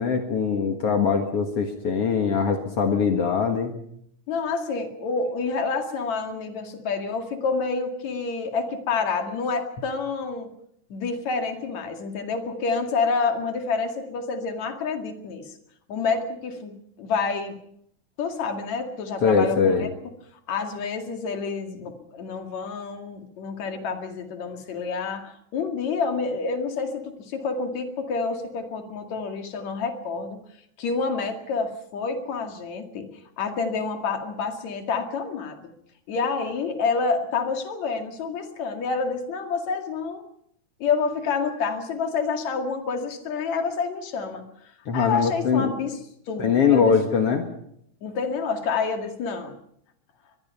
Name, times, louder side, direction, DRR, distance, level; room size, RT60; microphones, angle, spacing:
voice 1, 0.0-3.7 19.2-19.9 44.9-45.7 46.4-47.5, left 6 dB, 55° left, 4 dB, 2.6 m, -22 dB
voice 2, 4.3-10.5 10.9-15.5 15.9-17.5 18.2-19.9 20.5-30.4 30.8-33.1 33.4-35.7 36.1-40.2 40.8-44.4 44.9-46.0 46.3-46.9 48.0-49.6, left 4 dB, 70° left, 5 dB, 3.5 m, -28 dB
23.5 x 21.0 x 5.5 m, 0.72 s
omnidirectional pair, 3.3 m